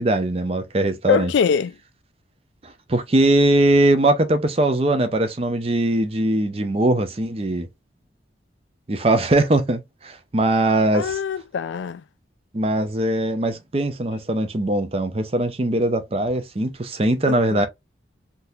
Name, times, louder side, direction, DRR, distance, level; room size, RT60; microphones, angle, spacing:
voice 1, 0.0-1.3 2.6-7.7 8.9-11.2 12.5-17.7, right 1 dB, 30° right, 0.6 m, -21 dB
voice 2, 1.1-1.8 10.9-12.0 17.3-17.7, left 7 dB, 75° left, 0.3 m, -23 dB
3.7 x 2.8 x 2.4 m
head